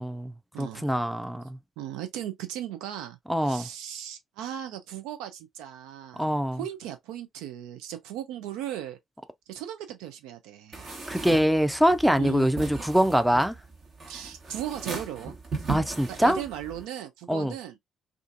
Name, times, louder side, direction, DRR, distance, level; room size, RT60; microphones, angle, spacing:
voice 1, 0.0-1.6 3.3-3.7 6.2-6.6 11.1-13.6 15.7-16.4 17.3-17.5, equal, 5° right, 0.5 m, -24 dB
voice 2, 0.5-0.9 1.8-9.0 9.5-10.9 12.2-12.5 14.1-15.4 16.1-17.8, right 11 dB, 70° right, 0.4 m, -37 dB
sound 1, 10.7-16.8, right 3 dB, 45° right, 1.1 m, -38 dB
2.5 x 2.4 x 2.5 m
figure-of-eight pair, 45°, 0 cm